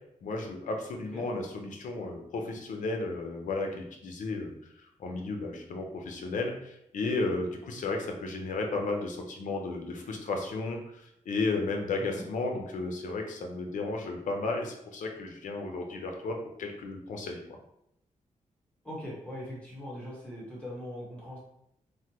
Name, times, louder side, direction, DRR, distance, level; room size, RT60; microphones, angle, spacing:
voice 1, 0.2-4.5 5.0-17.6, left 3 dB, 85° left, 3 dB, 0.5 m, -33 dB
voice 2, 18.8-21.4, equal, 10° left, -7 dB, 1.3 m, -41 dB
3.2 x 2.1 x 2.9 m, 0.78 s
wide cardioid pair, 115°, 13 cm